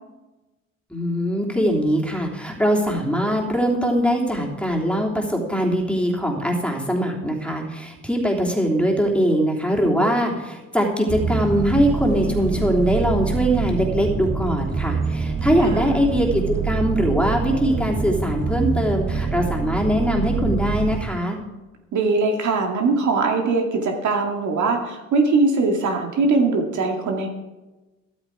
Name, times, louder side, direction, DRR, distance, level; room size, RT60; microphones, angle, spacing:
voice 1, 0.9-21.4, equal, 5° left, 0 dB, 3.3 m, -22 dB
sound 1, 11.1-21.0, right 5 dB, 55° right, 3.3 m, -25 dB
voice 2, 21.9-27.3, right 3 dB, 70° right, 2 dB, 2.2 m, -21 dB
13.5 x 12.5 x 4.8 m, 1.1 s
cardioid pair, 90°, 30 cm